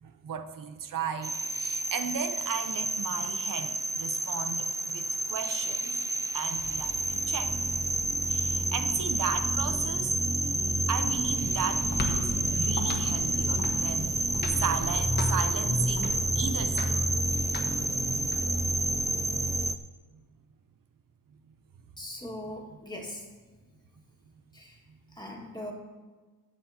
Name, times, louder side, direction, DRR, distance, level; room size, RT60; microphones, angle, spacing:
voice 1, 0.0-6.0 6.3-7.6 8.3-10.3 10.9-17.0, right 7 dB, 65° right, 7 dB, 0.7 m, -35 dB
sound 1, 1.2-19.8, right 2 dB, 10° right, 0.3 m, -29 dB
sound 2, 10.9-18.4, left 1 dB, 30° left, 1.3 m, -35 dB
voice 2, 22.0-23.2 24.5-24.8 25.1-25.7, left 1 dB, 10° left, -2 dB, 1.9 m, -40 dB
22.5 x 8.0 x 2.9 m, 1.4 s
wide cardioid pair, 160°, 35 cm